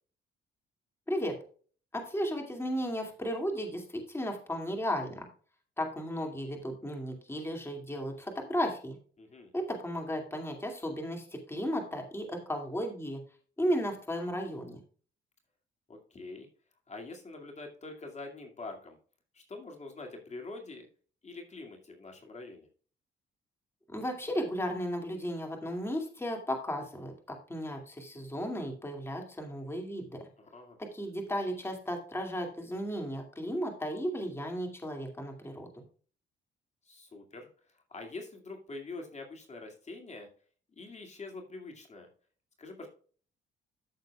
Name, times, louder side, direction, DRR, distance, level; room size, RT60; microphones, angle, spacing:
voice 1, 1.9-5.3 5.8-9.0 9.5-13.2 13.6-14.8 23.9-30.2 30.8-35.7, equal, 10° left, 3 dB, 2.3 m, -34 dB
voice 2, 9.2-9.5 15.9-16.5 16.9-19.0 19.3-20.9 21.2-22.7 30.4-30.8 36.9-37.5 37.9-40.3 40.8-42.1 42.6-42.9, left 3 dB, 35° left, 2 dB, 2.2 m, -45 dB
13.5 x 6.7 x 2.3 m, 0.42 s
cardioid pair, 90°, 20 cm